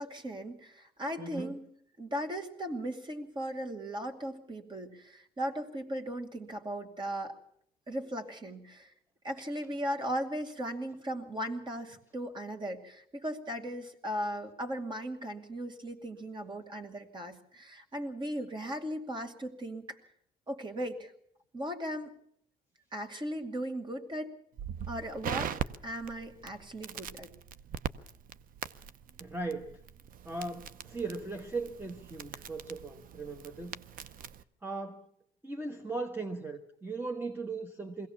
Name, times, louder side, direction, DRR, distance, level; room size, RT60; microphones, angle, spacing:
voice 1, 0.0-1.7 2.0-7.4 7.9-8.9 9.2-20.0 20.5-21.1 21.5-22.1 22.9-24.3 24.9-25.5 25.8-27.3, equal, 25° right, 6 dB, 2.4 m, -37 dB
voice 2, 1.2-1.6 29.2-29.8 30.2-34.1 34.6-35.1 35.4-38.1, right 3 dB, 10° right, 6 dB, 1.2 m, -38 dB
Crackle, 24.6-34.4, right 9 dB, 55° right, 0.8 m, -41 dB
22.0 x 17.0 x 7.1 m, 0.69 s
cardioid pair, 110°, 17 cm